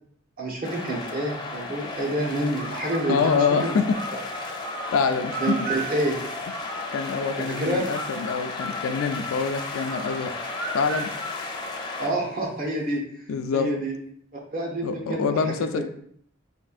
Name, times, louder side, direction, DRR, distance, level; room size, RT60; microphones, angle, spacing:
voice 1, 0.4-3.8 4.1-4.2 5.4-6.2 7.4-7.9 12.0-13.0 13.5-13.9 14.5-15.8, right 1 dB, 45° right, -1 dB, 0.9 m, -28 dB
sound 1, 0.6-12.1, left 3 dB, 20° left, 0.5 m, -34 dB
sound 2, 2.5-7.3 7.9-12.4, right 2 dB, 75° right, 0.6 m, -37 dB
voice 2, 3.1-3.8 4.9-5.5 6.9-10.3 10.7-11.1 13.3-13.7 14.8-15.8, left 5 dB, 80° left, 8 dB, 0.3 m, -25 dB
4.3 x 3.3 x 2.4 m, 0.64 s
head